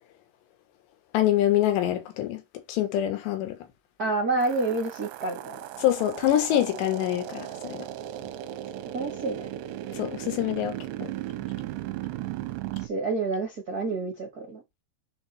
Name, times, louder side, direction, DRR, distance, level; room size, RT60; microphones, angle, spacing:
voice 1, 1.1-2.4 2.7-3.6 5.8-7.9 9.9-11.1, left 12 dB, 80° left, 3.5 m, -25 dB
voice 2, 4.0-5.6 8.9-9.5 12.8-14.6, right 3 dB, 70° right, 0.8 m, -28 dB
sound 1, 4.4-12.9, right 13 dB, 90° right, 2.9 m, -36 dB
7.2 x 4.6 x 4.3 m
omnidirectional pair, 4.9 m